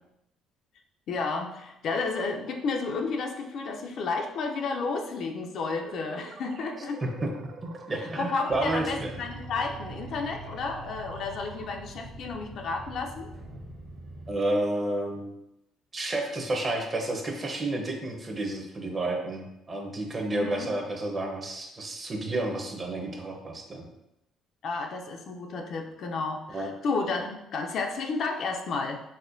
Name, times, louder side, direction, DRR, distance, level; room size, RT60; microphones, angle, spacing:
voice 1, 1.1-7.0 8.0-13.3 20.3-20.7 24.6-29.0, left 4 dB, 60° left, 3 dB, 0.4 m, -32 dB
sound 1, 5.7-12.1, right 4 dB, 65° right, 0.3 m, -47 dB
voice 2, 7.6-9.1 14.3-15.3 15.9-23.9 26.5-26.7, right 2 dB, 30° right, 2 dB, 0.6 m, -31 dB
sound 2, 8.5-14.3, right 1 dB, 85° right, 0.9 m, -43 dB
4.1 x 2.1 x 2.5 m, 0.86 s
cardioid pair, 95°, 0 cm